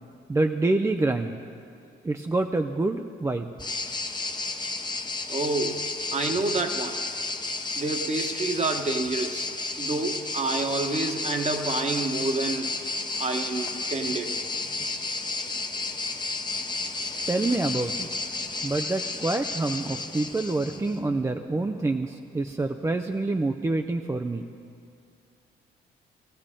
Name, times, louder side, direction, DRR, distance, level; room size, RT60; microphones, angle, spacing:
voice 1, 0.3-1.4 2.0-3.5 17.3-18.1 18.6-24.4, right 2 dB, 15° right, 5 dB, 0.5 m, -27 dB
sound 1, 3.6-21.0, left 3 dB, 20° left, 0.9 m, -32 dB
voice 2, 5.3-5.8 6.1-7.0 7.8-9.5 9.8-12.8 13.2-14.7, right 3 dB, 35° right, 5 dB, 1.2 m, -28 dB
19.5 x 14.5 x 3.8 m, 2.4 s
cardioid pair, 90°, 20 cm